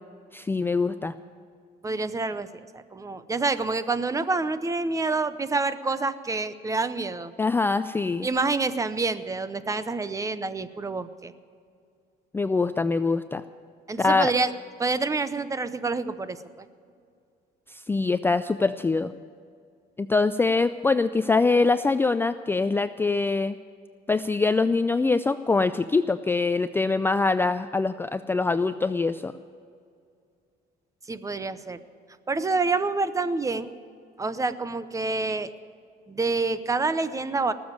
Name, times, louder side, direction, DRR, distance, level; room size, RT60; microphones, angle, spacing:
voice 1, 0.3-1.1 7.4-8.3 12.3-13.4 14.0-14.3 17.7-19.1 20.0-23.6 24.1-29.3, left 3 dB, 15° left, 12 dB, 0.3 m, -24 dB
voice 2, 1.8-2.5 2.7-7.3 8.2-11.3 13.9-14.5 14.8-16.7 31.1-31.8 32.3-33.7 34.2-35.5 36.1-37.5, right 3 dB, 20° right, 13 dB, 0.7 m, -27 dB
19.0 x 7.2 x 9.0 m, 2.3 s
cardioid pair, 110°, 17 cm